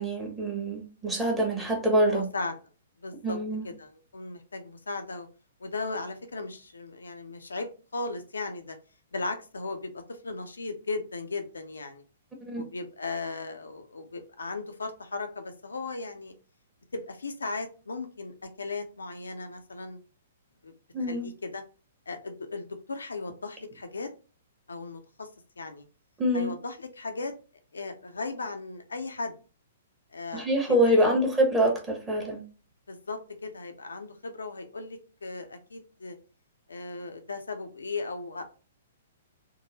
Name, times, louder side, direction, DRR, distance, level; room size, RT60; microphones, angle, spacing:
voice 1, 0.0-2.3 3.2-3.6 12.5-12.6 20.9-21.3 26.2-26.5 30.3-32.4, right 1 dB, 15° right, 1.0 m, -25 dB
voice 2, 2.1-2.5 3.0-3.4 3.6-5.3 5.6-8.8 9.1-12.0 12.5-16.3 16.9-20.0 20.6-20.7 21.0-21.6 22.1-24.1 24.7-25.3 25.6-25.8 26.3-27.3 27.7-29.3 30.1-31.2 32.9-36.2 36.7-38.4, left 3 dB, 80° left, 0.6 m, -37 dB
3.7 x 2.0 x 2.7 m
figure-of-eight pair, 120°, 0 cm